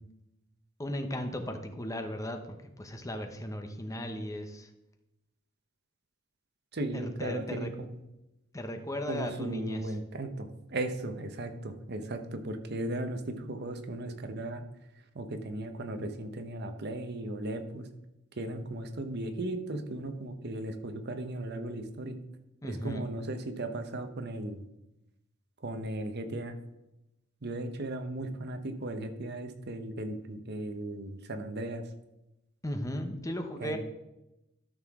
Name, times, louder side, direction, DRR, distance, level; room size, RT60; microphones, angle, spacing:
voice 1, 0.8-4.7 6.9-7.7 8.5-10.0 22.6-23.1 32.6-33.8, left 1 dB, 15° left, 6 dB, 0.8 m, -36 dB
voice 2, 6.7-7.7 9.1-14.6 15.1-17.9 18.4-22.2 22.6-24.6 25.6-26.5 27.4-31.8 33.6-33.8, right 1 dB, 55° right, 8 dB, 0.9 m, -36 dB
13.0 x 6.6 x 3.6 m, 0.92 s
head